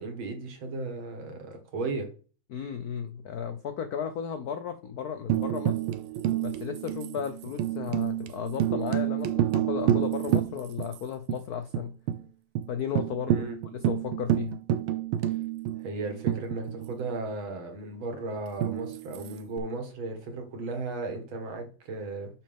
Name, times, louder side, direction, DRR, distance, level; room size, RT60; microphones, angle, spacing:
voice 1, 0.0-2.1 13.3-13.6 15.3-15.4 15.8-22.3, right 3 dB, 70° right, 4 dB, 2.5 m, -35 dB
voice 2, 2.5-5.8 6.4-11.9 12.7-13.4 13.7-14.6, left 7 dB, 70° left, 9 dB, 0.9 m, -34 dB
Tambourine, 5.3-11.0 11.3-11.4 11.7-12.2 12.5-12.7 13.0-17.1 18.6-19.6, right 11 dB, 90° right, 1.6 m, -29 dB
8.8 x 6.0 x 3.6 m, 0.37 s
omnidirectional pair, 2.3 m